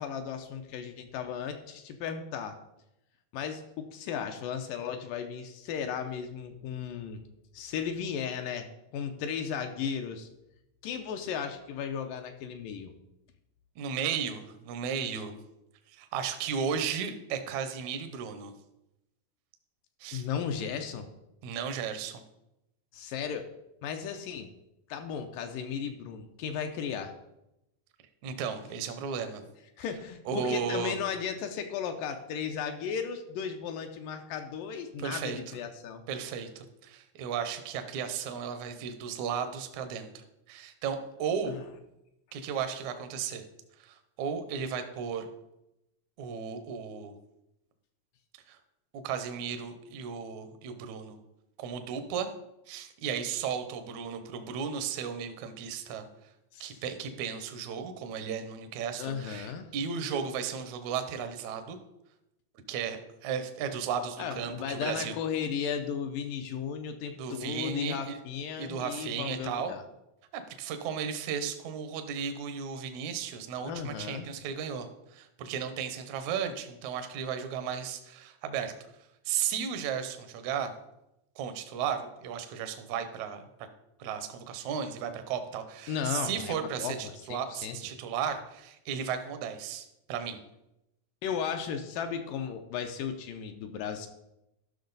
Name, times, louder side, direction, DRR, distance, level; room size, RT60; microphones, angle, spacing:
voice 1, 0.0-2.6 3.3-7.2 7.5-10.3 10.8-12.9 20.1-21.1 22.9-23.5 23.8-24.5 24.9-27.1 29.8-36.0 41.5-41.6 56.5-56.8 59.0-59.7 64.2-69.8 73.7-74.3 85.9-87.8 91.2-94.1, left 7 dB, 80° left, 6 dB, 2.2 m, -35 dB
voice 2, 13.8-15.4 15.9-18.5 20.0-20.3 21.4-22.2 28.2-29.4 30.3-31.0 35.0-35.4 36.1-41.5 42.3-43.4 43.8-45.3 46.2-47.1 48.5-48.6 48.9-51.2 51.6-52.3 52.7-56.1 56.6-61.8 62.7-65.1 67.2-68.2 68.6-69.7 70.3-78.7 79.3-80.7 81.4-83.4 84.0-90.4, right 7 dB, 70° right, 8 dB, 1.9 m, -35 dB
13.0 x 6.1 x 4.0 m, 0.87 s
omnidirectional pair, 4.1 m